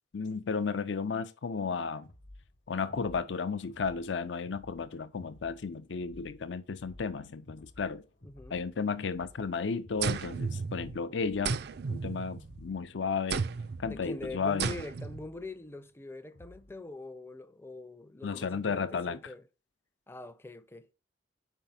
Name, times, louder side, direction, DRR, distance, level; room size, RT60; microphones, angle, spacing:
voice 1, 0.1-2.1 2.7-8.0 8.5-11.6 11.9-13.4 13.8-14.7 18.2-19.2, left 5 dB, 75° left, 0.6 m, -33 dB
sound 1, 2.0-16.8, left 1 dB, 50° left, 0.9 m, -55 dB
voice 2, 8.2-8.6 13.8-19.4 20.1-20.9, left 2 dB, 15° left, 0.5 m, -44 dB
sound 2, 10.0-11.1 11.4-12.7 13.3-13.8 14.6-15.2, right 5 dB, 60° right, 0.4 m, -34 dB
4.8 x 4.6 x 5.5 m
head